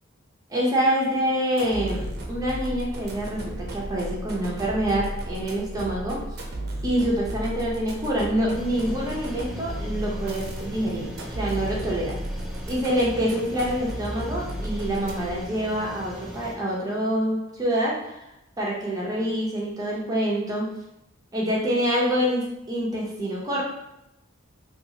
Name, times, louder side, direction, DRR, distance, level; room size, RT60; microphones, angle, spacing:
voice 1, 0.5-6.2 6.8-12.2 12.7-18.2 18.6-20.7 21.3-23.6, equal, 20° right, -5 dB, 0.7 m, -26 dB
sound 1, 1.5-15.5, right 1 dB, 55° right, 0.6 m, -34 dB
sound 2, 8.5-16.5, equal, ahead, 0.3 m, -40 dB
2.9 x 2.8 x 2.8 m, 0.87 s
head